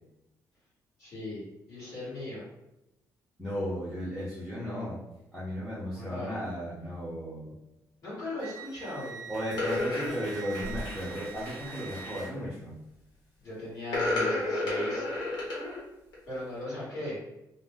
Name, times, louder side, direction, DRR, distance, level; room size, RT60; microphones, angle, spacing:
voice 1, 1.0-2.5 5.8-6.4 8.0-9.2 13.4-15.1 16.3-17.2, left 1 dB, 50° left, -9 dB, 1.4 m, -38 dB
voice 2, 3.4-5.0 5.3-7.5 9.3-12.8, equal, ahead, -10 dB, 0.6 m, -35 dB
sound 1, 7.0-7.2 8.7-8.8 9.0-12.3, equal, 30° left, 1.4 m, -44 dB
Wind instrument woodwind instrument, 8.4-12.3, right 8 dB, 75° right, 0.3 m, -45 dB
sound 2, 9.5-10.2 12.1-12.5 13.9-15.8 16.1-16.4, left 2 dB, 75° left, 1.2 m, -30 dB
2.5 x 2.0 x 3.5 m, 0.90 s
cardioid pair, 175°, 7 cm